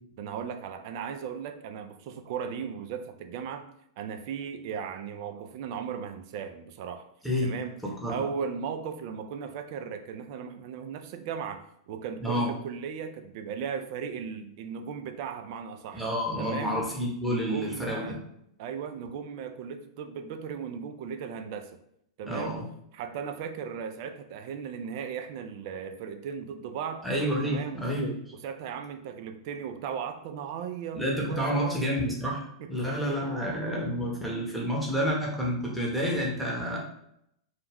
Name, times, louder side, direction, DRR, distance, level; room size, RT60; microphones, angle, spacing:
voice 1, 0.2-3.7 4.0-7.1 7.4-7.8 8.1-16.1 16.4-16.8 17.3-18.3 18.6-21.7 22.2-22.5 22.9-27.0 27.4-27.9 28.4-31.8 32.6-33.3, right 7 dB, 50° right, 8 dB, 0.3 m, -37 dB
voice 2, 7.8-8.2 12.2-12.5 15.9-18.2 22.2-22.6 27.0-28.1 30.9-36.8, equal, ahead, -3 dB, 0.8 m, -29 dB
2.3 x 2.1 x 3.3 m, 0.74 s
hypercardioid pair, 105°, 3 cm